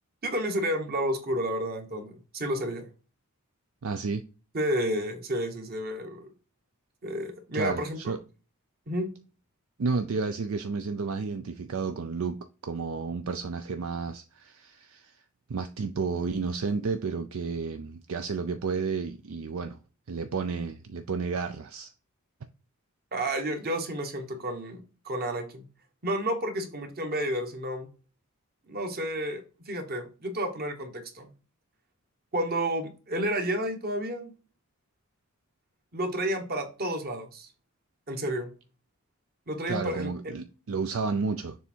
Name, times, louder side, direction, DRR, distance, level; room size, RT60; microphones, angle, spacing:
voice 1, 0.2-2.9 4.5-6.3 7.0-8.2 8.9-9.1 23.1-25.6 26.0-27.9 28.7-31.3 32.3-34.3 35.9-37.5 38.1-38.5 39.5-40.1, right 1 dB, 45° right, 1.3 m, -31 dB
voice 2, 3.8-4.2 7.5-8.2 9.8-12.4 12.6-15.2 15.5-19.8 20.1-21.9 39.7-41.6, right 4 dB, 65° right, 0.5 m, -31 dB
7.0 x 3.5 x 4.4 m
head